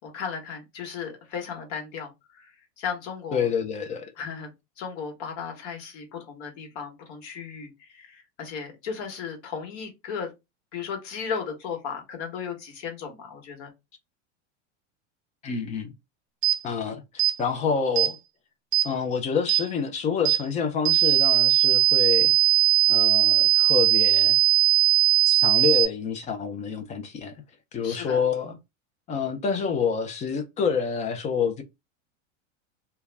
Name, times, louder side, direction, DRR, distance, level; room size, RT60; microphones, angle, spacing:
voice 1, 0.0-3.5 4.2-10.3 10.7-13.7 27.8-28.2, left 6 dB, 60° left, 1.1 m, -35 dB
voice 2, 3.3-4.1 15.4-15.9 16.6-18.2 18.8-22.3 22.9-24.4 25.2-27.3 27.7-28.6 29.1-31.6, left 6 dB, 20° left, 0.3 m, -27 dB
sound 1, 16.4-16.6 17.2-17.4 18.0-18.1 18.7-18.9 19.5-19.6 20.3-20.4 20.9-25.9, right 14 dB, 35° right, 0.5 m, -19 dB
2.2 x 2.1 x 3.3 m
supercardioid pair, 120°, 36 cm